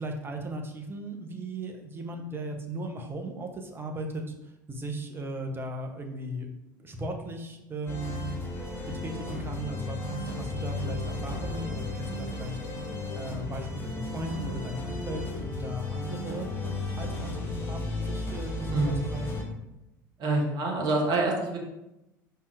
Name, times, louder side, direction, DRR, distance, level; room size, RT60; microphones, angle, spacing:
voice 1, 0.0-6.5 6.8-8.3 8.9-12.6 13.1-16.5 17.0-19.5, right 1 dB, 20° right, 3 dB, 1.1 m, -37 dB
sound 1, 7.9-19.4, left 2 dB, 20° left, 1.8 m, -34 dB
voice 2, 20.2-21.6, right 2 dB, 40° right, 0 dB, 1.9 m, -26 dB
5.5 x 4.6 x 4.8 m, 0.93 s
figure-of-eight pair, 70°, 11 cm